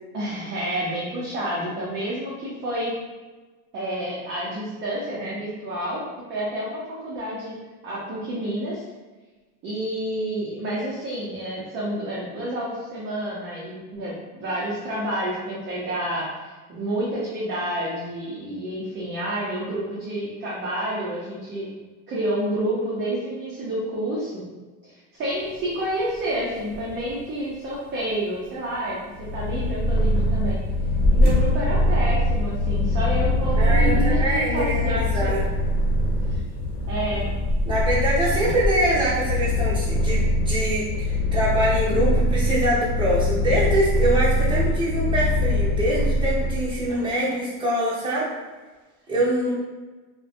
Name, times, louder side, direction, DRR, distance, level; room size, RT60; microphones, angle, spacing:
voice 1, 0.1-3.0 3.7-6.0 6.3-7.5 7.8-8.8 9.6-21.7 22.1-24.4 24.8-30.6 31.1-35.3 36.9-37.2 46.9-47.3, right 1 dB, 25° right, -7 dB, 0.4 m, -29 dB
sound 1, 25.2-40.0, left 1 dB, 20° left, 0.8 m, -30 dB
Purr, 29.2-46.9, left 1 dB, 45° left, 0.9 m, -23 dB
voice 2, 33.6-35.4 37.7-48.3 49.1-49.5, right 1 dB, 10° right, -9 dB, 0.8 m, -24 dB
2.5 x 2.1 x 2.5 m, 1.3 s
supercardioid pair, 130°, 45 cm